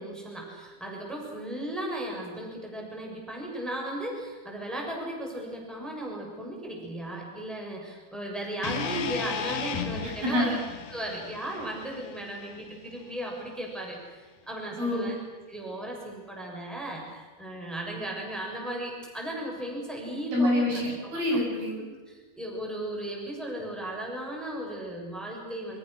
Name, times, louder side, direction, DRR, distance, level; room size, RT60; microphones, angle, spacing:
voice 1, 0.0-10.6 10.9-15.1 15.5-20.6 21.3-21.4 22.4-25.8, right 1 dB, ahead, -1 dB, 6.5 m, -36 dB
sound 1, 8.6-12.8, left 6 dB, 80° left, 3.7 m, -36 dB
voice 2, 10.0-10.6 14.8-15.1 20.3-21.9, left 1 dB, 70° right, -2 dB, 9.9 m, -27 dB
28.5 x 25.5 x 6.7 m, 1.4 s
omnidirectional pair, 4.5 m